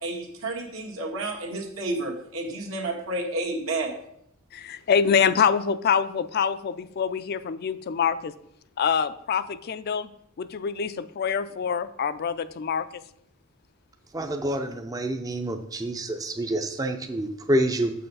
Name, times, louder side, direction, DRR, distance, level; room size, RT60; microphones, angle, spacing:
voice 1, 0.0-3.9, right 2 dB, 75° right, 1 dB, 1.6 m, -30 dB
voice 2, 4.5-8.3 8.8-10.1 10.4-13.0, left 7 dB, 50° left, 13 dB, 0.4 m, -25 dB
voice 3, 14.1-17.9, right 1 dB, 15° right, 6 dB, 0.5 m, -27 dB
7.0 x 5.6 x 5.4 m, 0.73 s
head